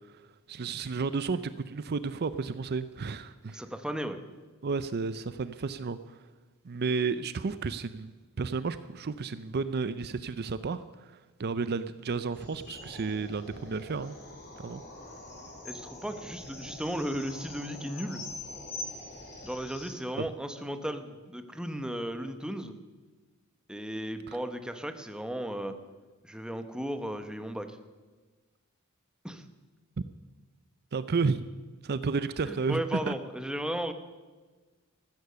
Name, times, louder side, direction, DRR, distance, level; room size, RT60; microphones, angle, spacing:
voice 1, 0.5-3.6 4.6-6.0 6.6-8.1 8.4-14.2 14.6-14.8 20.2-20.3 24.3-24.4 30.9-31.5 31.8-32.8 33.1-33.2, right 4 dB, 50° right, 14 dB, 0.5 m, -32 dB
voice 2, 3.5-4.2 15.6-18.2 19.4-22.7 23.7-25.8 26.2-27.8 29.2-29.4 32.4-33.9, equal, 5° right, 8 dB, 1.0 m, -35 dB
sound 1, 12.3-19.9, left 2 dB, 50° left, 5.3 m, -44 dB
14.5 x 13.5 x 6.9 m, 1.3 s
head